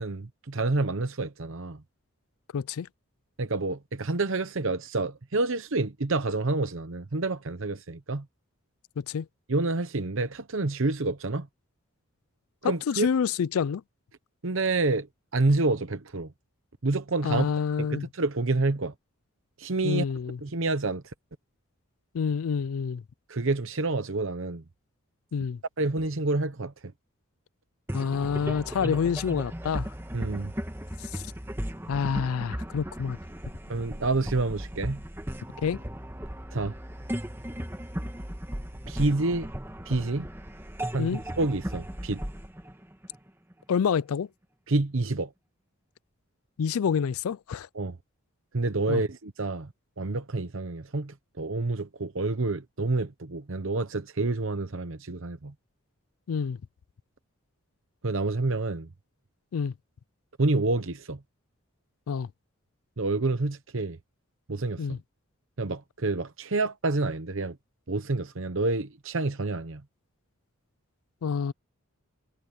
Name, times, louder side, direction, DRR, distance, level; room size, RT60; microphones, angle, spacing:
voice 1, 0.0-1.8 3.4-8.2 9.5-11.5 12.6-13.1 14.4-15.1 15.3-16.3 16.8-17.5 17.8-18.9 19.6-20.0 20.4-21.0 23.3-24.6 25.8-26.7 30.1-30.5 33.7-35.0 36.5-36.7 38.9-39.5 39.9-40.3 40.9-42.2 44.7-45.3 47.7-48.0 48.5-49.7 50.0-55.5 58.0-58.9 60.4-61.2 63.0-64.0 64.5-64.9 65.6-67.6 67.9-69.8, right 3 dB, 60° right, 0.9 m, -28 dB
voice 2, 2.5-2.9 9.0-9.3 12.6-13.8 17.2-18.1 19.8-20.4 22.1-23.0 25.3-25.6 27.9-29.9 31.1-31.2 31.9-33.2 35.6-35.8 41.0-41.2 43.7-44.3 46.6-47.7 48.9-49.0 56.3-56.6 59.5-59.7 62.1-62.3 64.8-65.0 71.2-71.5, left 6 dB, 75° left, 0.4 m, -28 dB
sound 1, 27.9-43.5, equal, 10° right, 1.5 m, -36 dB
head